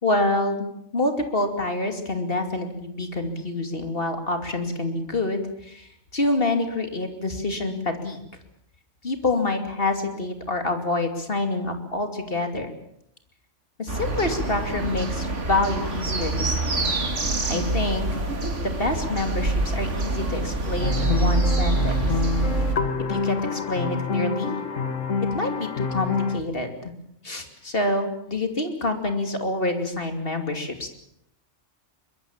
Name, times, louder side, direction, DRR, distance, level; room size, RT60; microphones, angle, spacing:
voice 1, 0.0-0.7 0.9-8.2 9.0-12.7 13.8-17.0 17.5-18.1 18.6-22.2 23.1-24.6 25.3-26.9 27.2-30.9, left 2 dB, 50° left, 6 dB, 3.0 m, -27 dB
sound 1, 13.9-22.7, right 3 dB, 75° right, 2.7 m, -25 dB
sound 2, 20.8-26.4, left 5 dB, 90° left, 1.9 m, -27 dB
23.0 x 21.0 x 7.3 m, 0.75 s
omnidirectional pair, 1.3 m